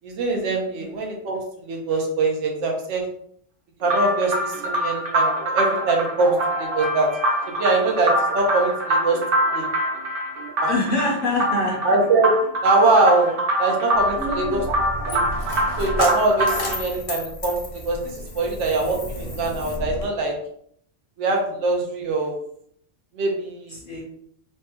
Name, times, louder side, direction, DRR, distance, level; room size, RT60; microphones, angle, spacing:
voice 1, 0.0-3.0 3.8-7.1 7.5-9.2 9.5-9.7 10.6-10.7 11.8-12.3 12.6-14.6 15.1-15.2 15.8-17.6 17.8-20.3 21.2-22.3 23.1-23.8, right 3 dB, 80° right, 0 dB, 1.0 m, -22 dB
sound 1, 3.9-16.8, right 1 dB, 55° right, 0.7 m, -24 dB
voice 2, 10.7-11.8 14.2-14.6 23.7-24.0, left 2 dB, 55° left, -2 dB, 0.7 m, -25 dB
Coin (dropping), 13.9-20.1, left 1 dB, 85° left, 1.2 m, -32 dB
3.3 x 2.1 x 2.8 m, 0.68 s
omnidirectional pair, 1.2 m